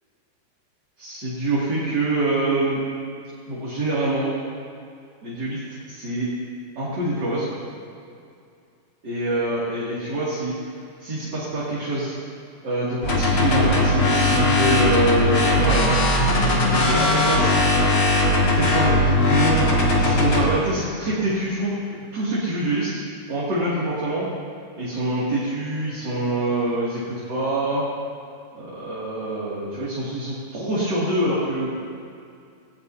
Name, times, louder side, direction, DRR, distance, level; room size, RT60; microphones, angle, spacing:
voice 1, 1.0-2.8 3.5-4.3 5.2-5.6 5.9-6.3 6.8-7.5 9.0-10.5 11.0-12.1 12.6-16.1 16.7-17.6 18.4-19.7 19.9-21.8 22.1-23.0 23.3-24.3 24.8-27.8 28.5-31.7, right 1 dB, 35° right, -9 dB, 2.8 m, -25 dB
sound 1, 13.0-20.5, left 1 dB, 40° left, 2.7 m, -19 dB
19.0 x 17.5 x 2.8 m, 2.4 s
omnidirectional pair, 3.9 m